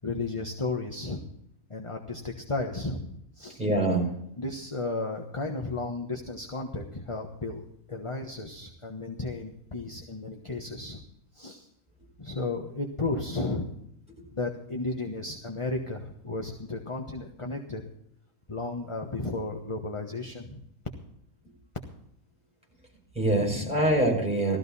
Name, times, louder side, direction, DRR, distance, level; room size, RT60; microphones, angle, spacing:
voice 1, 0.0-1.2 1.7-3.6 4.4-11.0 11.3-11.7 12.2-13.7 14.3-17.8 18.5-20.6 23.3-23.7, left 2 dB, 20° left, 3 dB, 1.2 m, -34 dB
voice 2, 3.6-4.1 23.1-24.6, right 1 dB, 5° right, -1 dB, 6.2 m, -24 dB
16.5 x 14.0 x 4.2 m, 0.77 s
omnidirectional pair, 1.6 m